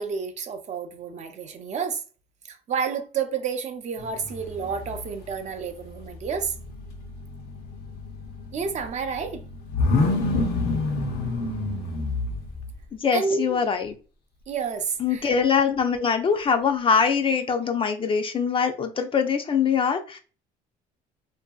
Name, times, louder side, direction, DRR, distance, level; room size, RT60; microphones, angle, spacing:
voice 1, 0.0-2.0 2.5-6.5 8.5-9.4 13.1-13.6 14.5-15.4, right 6 dB, 45° right, 0.5 m, -30 dB
sound 1, 4.0-5.4 5.7-12.8, left 3 dB, 70° left, 0.7 m, -29 dB
voice 2, 12.9-13.9 15.0-20.2, left 6 dB, 30° left, 0.4 m, -23 dB
2.6 x 2.6 x 2.2 m
cardioid pair, 110°, 17 cm